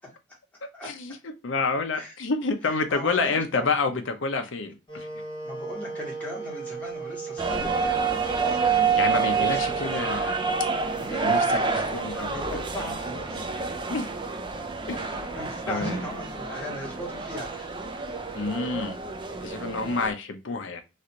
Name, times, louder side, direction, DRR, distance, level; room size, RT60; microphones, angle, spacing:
voice 1, 0.8-1.2 1.4-5.1 9.0-10.5 11.1-11.4 11.7-12.4 13.9-14.1 14.9-15.2 15.7-16.1 18.3-19.0 19.4-20.8, left 3 dB, 70° left, 0.6 m, -28 dB
voice 2, 2.9-3.7 5.4-9.0 9.3-10.0 11.0-13.5 15.3-17.7, left 1 dB, 10° left, 1.3 m, -38 dB
Wind instrument woodwind instrument, 4.9-12.8, right 5 dB, 25° left, 0.9 m, -38 dB
sound 1, 7.4-20.1, right 5 dB, 25° right, 0.4 m, -28 dB
3.2 x 2.5 x 2.7 m
head